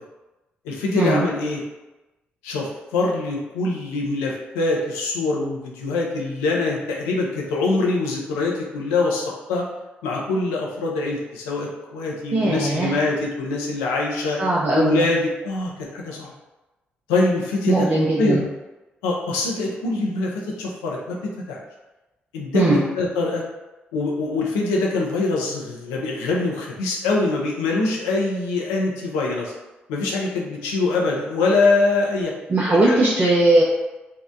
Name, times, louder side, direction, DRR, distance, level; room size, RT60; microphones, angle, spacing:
voice 1, 0.6-1.6 2.4-9.7 10.0-14.4 14.7-16.3 17.1-17.9 18.2-18.5 19.0-21.2 21.5-21.6 22.3-23.4 23.9-29.5 29.9-32.3 32.7-33.1, left 3 dB, 80° left, -2 dB, 0.4 m, -23 dB
voice 2, 12.3-13.0 14.4-15.0 17.7-18.4 22.5-22.8 32.5-33.6, right 2 dB, 35° right, -5 dB, 0.5 m, -19 dB
2.6 x 2.0 x 2.4 m, 1.0 s
hypercardioid pair, 40°, 5 cm